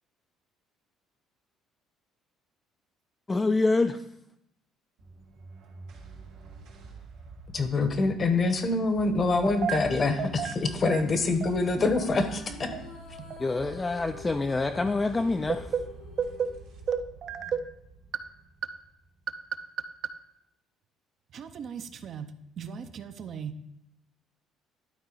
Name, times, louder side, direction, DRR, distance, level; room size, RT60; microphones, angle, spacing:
voice 1, 3.3-4.0 13.4-15.6, left 3 dB, 20° left, 0.3 m, -26 dB
sound 1, 5.0-19.6, right 3 dB, 90° right, 2.2 m, -47 dB
voice 2, 7.5-12.7, left 3 dB, 35° left, 0.9 m, -25 dB
sound 2, 11.8-17.3, left 4 dB, 80° left, 2.9 m, -48 dB
voice 3, 16.2-16.5 16.9-17.6 21.3-22.3 22.6-23.5, right 7 dB, 50° right, 0.5 m, -32 dB
11.5 x 4.1 x 3.9 m
cardioid pair, 115°, 0 cm